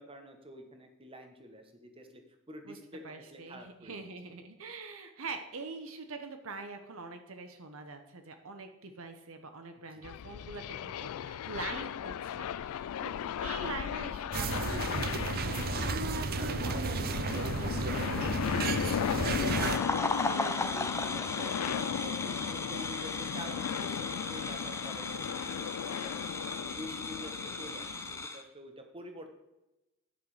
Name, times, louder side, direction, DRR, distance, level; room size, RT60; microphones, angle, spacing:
voice 1, 0.0-2.2 2.5-4.1 9.9-10.0 19.9-26.2 26.6-29.3, equal, 25° right, 5 dB, 1.2 m, -48 dB
voice 2, 3.0-15.8 16.3-19.6, right 3 dB, 65° right, 7 dB, 0.9 m, -44 dB
sound 1, 10.0-28.2, left 8 dB, 75° left, 0.3 m, -36 dB
sound 2, 14.3-19.8, right 4 dB, 45° right, 0.6 m, -33 dB
sound 3, 19.3-28.4, left 3 dB, 10° left, 0.7 m, -36 dB
10.0 x 6.5 x 4.9 m, 0.96 s
head